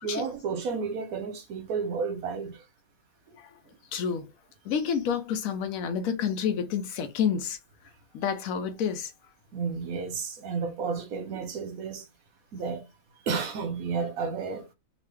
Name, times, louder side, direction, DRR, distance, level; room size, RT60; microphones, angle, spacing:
voice 1, 0.0-2.6 9.5-12.1 12.5-12.8 13.3-14.7, right 5 dB, 85° right, 1.2 m, -32 dB
voice 2, 3.9-4.3 4.7-7.6 8.1-9.1, left 7 dB, 75° left, 1.0 m, -29 dB
3.0 x 2.4 x 3.3 m
omnidirectional pair, 1.5 m